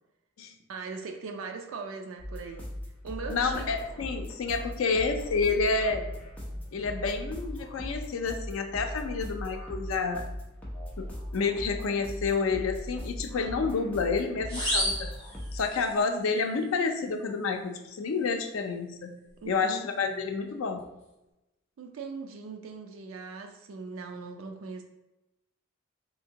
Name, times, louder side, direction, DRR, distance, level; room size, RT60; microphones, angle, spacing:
voice 1, 0.7-2.6 3.0-3.6 19.4-20.3 21.8-24.8, right 4 dB, 80° right, 4 dB, 0.4 m, -40 dB
sound 1, 2.2-15.7, equal, 10° left, 0.7 m, -39 dB
voice 2, 3.3-6.1 6.7-10.3 11.0-15.1 15.5-19.1 19.5-20.8, left 4 dB, 80° left, 5 dB, 0.4 m, -29 dB
sound 2, 14.5-16.0, equal, 15° right, 1.3 m, -31 dB
3.4 x 2.7 x 2.8 m, 0.96 s
head